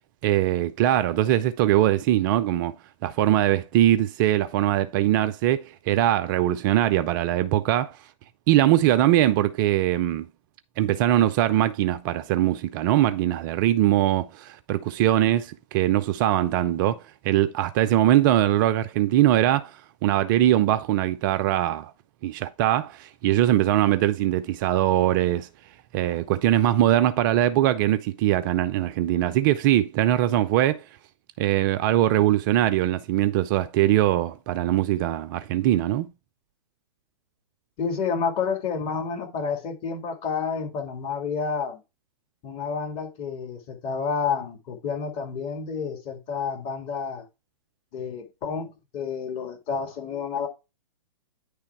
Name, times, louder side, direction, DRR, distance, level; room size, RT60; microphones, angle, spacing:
voice 1, 0.2-2.7 3.0-8.0 8.5-10.3 10.8-21.9 22.2-25.5 25.9-30.8 31.4-36.1, right 13 dB, 35° right, 0.4 m, -22 dB
voice 2, 37.8-41.8 42.4-47.2 47.9-50.5, left 5 dB, 30° left, 2.0 m, -30 dB
9.8 x 3.3 x 4.6 m
hypercardioid pair, 125°, 19 cm